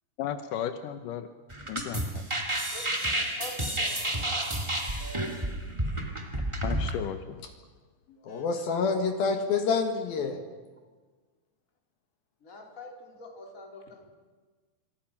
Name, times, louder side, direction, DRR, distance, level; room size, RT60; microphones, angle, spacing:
voice 1, 0.2-1.3 1.7-2.3 6.6-7.4, left 10 dB, 80° left, 9 dB, 1.9 m, -35 dB
sound 1, 1.5-6.9, right 1 dB, 20° right, 0.8 m, -30 dB
voice 2, 3.4-3.9 5.0-5.4 12.4-14.1, left 2 dB, 20° left, 1 dB, 3.3 m, -45 dB
voice 3, 8.3-10.4, left 5 dB, 65° left, 5 dB, 3.2 m, -27 dB
26.5 x 25.5 x 5.9 m, 1.4 s
omnidirectional pair, 5.1 m